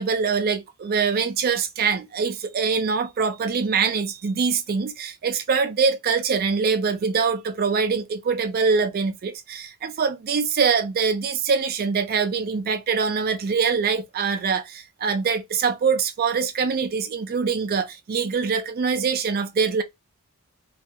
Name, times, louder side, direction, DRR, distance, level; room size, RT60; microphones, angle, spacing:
voice 1, 0.0-19.8, right 5 dB, 40° right, 0.3 m, -24 dB
2.3 x 2.1 x 2.7 m
head